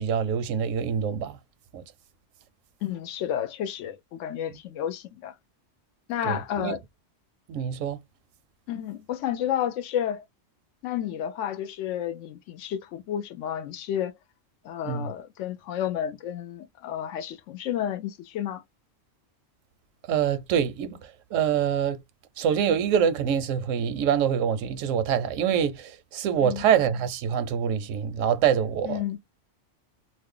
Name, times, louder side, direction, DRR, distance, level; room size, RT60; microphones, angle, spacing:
voice 1, 0.0-1.4 1.7-1.8 6.2-6.8 7.5-8.0 14.8-15.1 20.1-22.0 22.4-29.0, right 8 dB, 85° right, 1.0 m, -25 dB
voice 2, 2.8-5.3 6.1-6.8 8.7-10.2 10.8-14.1 14.6-18.6 26.4-26.6 28.8-29.2, left 10 dB, 80° left, 0.9 m, -31 dB
2.5 x 2.0 x 3.6 m
omnidirectional pair, 1.3 m